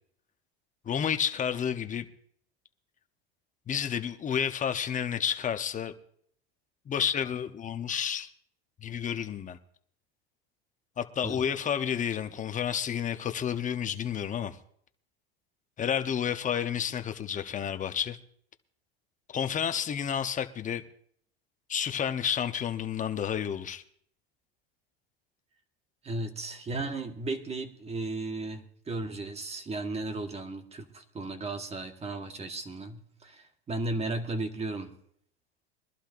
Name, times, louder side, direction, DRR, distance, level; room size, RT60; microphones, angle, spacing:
voice 1, 0.8-2.1 3.7-5.9 6.9-8.3 8.8-9.6 11.0-14.6 15.8-18.2 19.3-20.8 21.7-23.8, left 8 dB, 25° left, 0.9 m, -30 dB
voice 2, 26.0-34.9, right 2 dB, 20° right, 1.4 m, -35 dB
23.5 x 11.5 x 2.6 m
supercardioid pair, 110°, 30 cm